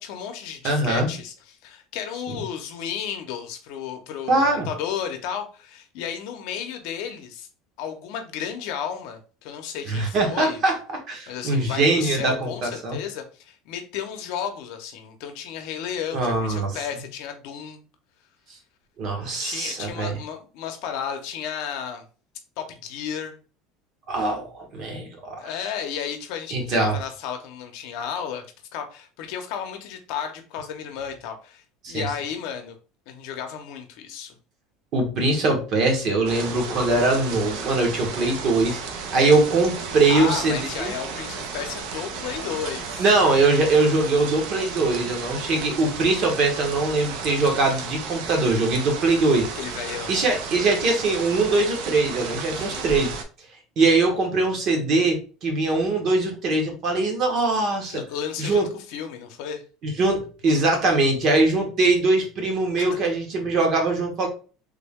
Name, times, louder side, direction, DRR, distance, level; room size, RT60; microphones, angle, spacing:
voice 1, 0.0-7.5 7.8-10.6 11.3-17.8 19.4-22.0 22.6-23.3 25.4-28.5 28.7-32.7 33.1-34.4 40.1-43.0 49.5-50.1 52.5-52.9 57.9-59.6 62.8-62.9, left 8 dB, 65° left, 5 dB, 0.7 m, -33 dB
voice 2, 0.6-1.1 4.3-4.7 9.9-10.8 11.1-13.0 16.1-16.8 19.0-20.1 24.1-25.3 26.5-27.0 31.8-32.1 34.9-38.8 39.1-40.9 43.0-49.5 50.1-53.1 53.8-58.0 58.4-58.7 59.8-64.3, right 2 dB, 40° right, 2 dB, 1.0 m, -22 dB
sound 1, 36.3-53.2, right 5 dB, 65° right, 0.6 m, -33 dB
3.5 x 2.2 x 3.5 m, 0.36 s
cardioid pair, 155°, 0 cm